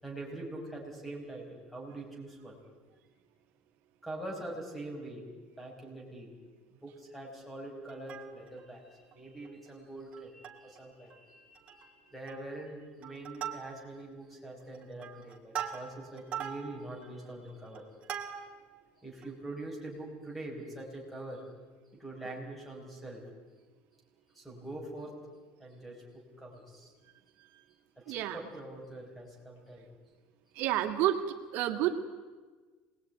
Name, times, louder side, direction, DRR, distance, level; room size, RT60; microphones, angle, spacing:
voice 1, 0.0-2.6 4.0-5.2 5.6-6.3 6.7-17.8 19.0-21.4 22.0-23.2 24.3-25.1 25.6-26.0 26.4-26.9 28.0-29.8, right 2 dB, ahead, 0 dB, 5.2 m, -44 dB
Plucked string instrument, 7.9-8.7 9.1-9.2 9.4-9.7 10.1-10.8 11.1-11.2 11.5-11.9 12.3-12.6 13.0-14.1 14.6-18.7 19.2-19.3, right 9 dB, 30° right, 2.5 m, -41 dB
voice 2, 28.1-28.4 30.6-31.2 31.5-32.0, right 13 dB, 55° right, 4 dB, 2.4 m, -29 dB
26.0 x 20.5 x 9.4 m, 1.4 s
cardioid pair, 180°, 4 cm